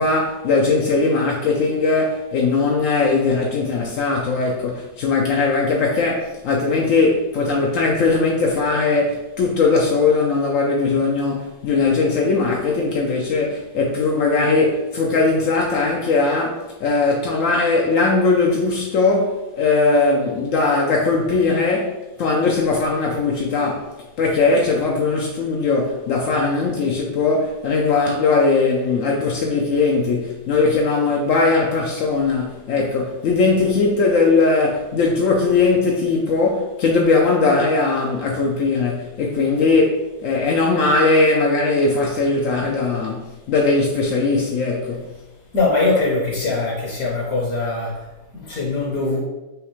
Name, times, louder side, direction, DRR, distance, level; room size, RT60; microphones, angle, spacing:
voice 1, 0.0-45.1, left 3 dB, 75° left, 0.7 m, -19 dB
voice 2, 45.5-49.2, left 3 dB, 60° left, 1.1 m, -22 dB
6.2 x 2.4 x 3.1 m
omnidirectional pair, 1.9 m